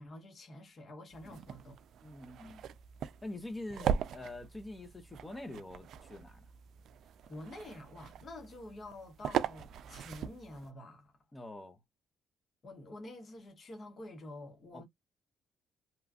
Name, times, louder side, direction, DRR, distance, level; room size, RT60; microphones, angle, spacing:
voice 1, 0.0-1.7 7.2-11.1 12.6-14.8, left 1 dB, 45° left, 1.1 m, -48 dB
sound 1, 1.1-10.7, right 8 dB, 70° right, 0.3 m, -40 dB
voice 2, 2.0-2.6 3.2-6.5 11.3-11.8 14.7-14.8, left 2 dB, 15° left, 0.7 m, -45 dB
3.0 x 2.3 x 2.4 m
cardioid pair, 90°, 0 cm